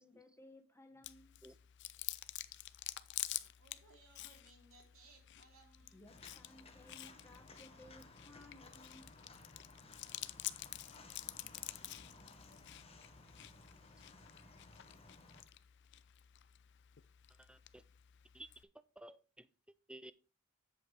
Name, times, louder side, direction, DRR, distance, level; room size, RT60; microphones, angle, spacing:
voice 1, 0.0-1.4 5.9-9.1, left 1 dB, 15° left, 4 dB, 1.3 m, -60 dB
Chewing mastication, 1.0-18.6, left 15 dB, 60° left, 0.5 m, -49 dB
voice 2, 3.6-6.0, right 3 dB, 90° right, 2 dB, 3.0 m, -64 dB
sound 1, 5.8-13.8, equal, 45° right, 1.4 m, -72 dB
Walk footsteps, 6.1-15.4, left 2 dB, 30° left, 1.2 m, -59 dB
voice 3, 17.4-17.8 18.3-18.5 18.7-19.5 19.9-20.1, right 1 dB, 5° right, 14 dB, 0.4 m, -54 dB
8.6 x 7.8 x 3.3 m, 0.33 s
head